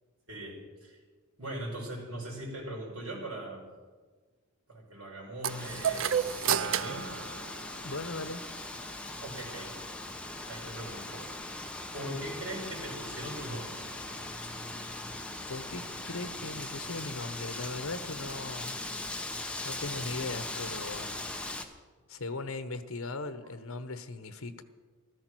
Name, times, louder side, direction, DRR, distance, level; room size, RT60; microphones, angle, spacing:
voice 1, 0.3-1.0 1.4-3.7 4.7-7.1 9.2-9.8 10.5-11.4 11.9-13.9, right 1 dB, 80° right, -2 dB, 5.6 m, -40 dB
sound 1, 5.4-8.1, right 8 dB, 60° right, 0.5 m, -31 dB
Wind, 5.5-21.6, left 2 dB, 5° left, 1.1 m, -40 dB
voice 2, 7.8-8.4 15.5-18.8 19.6-21.3 22.1-24.6, left 3 dB, 70° left, 11 dB, 1.1 m, -38 dB
15.0 x 13.5 x 6.2 m, 1.4 s
head